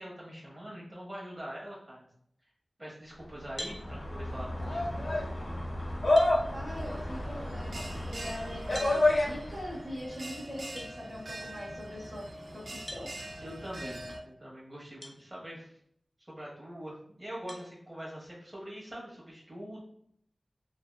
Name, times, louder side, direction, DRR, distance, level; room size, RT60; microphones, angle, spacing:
voice 1, 0.0-2.1 2.8-4.9 13.4-15.7 16.3-19.8, equal, 35° right, -5 dB, 1.0 m, -43 dB
sound 1, 3.4-9.8, left 1 dB, 70° left, 0.8 m, -30 dB
sound 2, 3.6-3.8 5.5-5.6 6.2-6.4 8.7-9.0 10.8-10.9 12.9-13.1 15.0-15.2 15.8-15.9 17.5-17.7, left 1 dB, 25° left, 0.5 m, -42 dB
voice 2, 6.5-12.2 12.5-12.6 12.9-13.1, equal, 10° right, -6 dB, 0.9 m, -42 dB
Bell, 6.7-14.2, right 1 dB, 60° right, 0.4 m, -43 dB
2.6 x 2.3 x 2.3 m, 0.67 s
wide cardioid pair, 60°, 0 cm